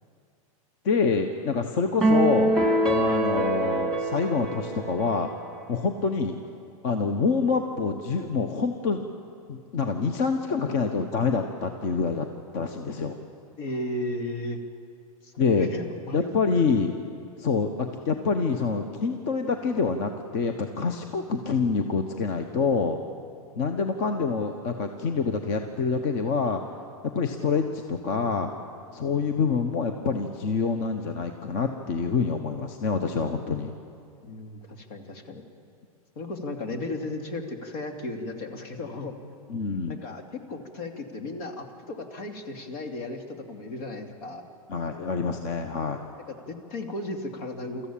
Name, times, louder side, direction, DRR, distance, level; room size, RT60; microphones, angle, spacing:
voice 1, 0.8-2.6 2.9-5.3 5.7-6.4 6.8-9.0 9.5-12.3 12.5-13.2 15.4-15.7 16.1-16.9 17.4-23.0 23.6-26.6 27.1-28.5 28.9-33.7 39.5-40.0 44.7-46.0, left 5 dB, 40° left, 6 dB, 1.2 m, -26 dB
sound 1, 2.0-5.5, right 1 dB, 5° left, 1.7 m, -24 dB
voice 2, 13.6-14.6 15.2-16.6 34.2-35.4 36.2-39.2 39.9-44.5 46.3-47.9, left 2 dB, 65° left, 4 dB, 2.7 m, -35 dB
24.0 x 14.5 x 8.7 m, 2.4 s
supercardioid pair, 150°, 19 cm